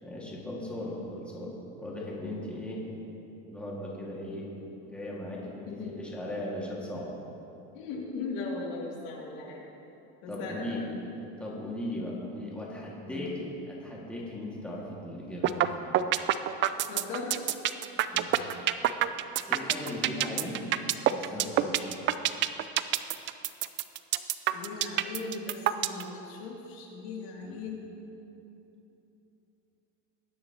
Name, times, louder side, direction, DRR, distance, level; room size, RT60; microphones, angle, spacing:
voice 1, 0.0-2.8 3.5-4.5 4.8-7.2 10.3-10.9 11.4-15.6 18.1-18.6 19.5-20.6 21.1-22.0 27.4-27.7, left 1 dB, 5° left, -5 dB, 1.9 m, -38 dB
voice 2, 2.2-2.5 4.3-4.4 5.7-6.0 7.7-9.6 10.2-10.8 13.0-13.3 16.9-17.4 24.5-27.9, left 4 dB, 75° left, -2 dB, 2.5 m, -38 dB
sound 1, 15.4-15.7 15.9-26.0, right 13 dB, 35° right, 0.4 m, -25 dB
20.5 x 9.5 x 2.9 m, 2.9 s
cardioid pair, 135°, 32 cm